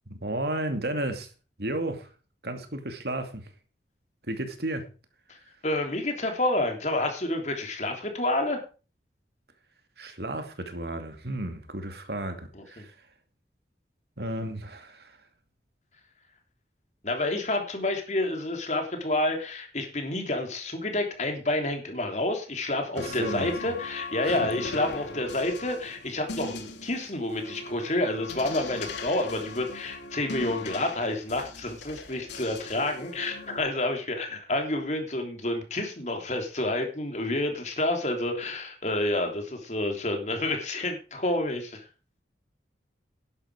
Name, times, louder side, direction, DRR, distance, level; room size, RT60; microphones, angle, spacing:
voice 1, 0.1-1.3 1.6-2.1 2.4-3.5 4.2-4.9 5.3-5.4 10.0-13.1 14.2-15.2 22.9-23.5 24.2-24.5, right 1 dB, 65° right, 2.5 m, -33 dB
voice 2, 5.6-8.6 12.6-12.9 17.0-41.8, left 2 dB, 40° left, 3.3 m, -29 dB
sound 1, 23.0-33.6, left 2 dB, 90° left, 2.4 m, -39 dB
11.5 x 11.0 x 5.0 m
head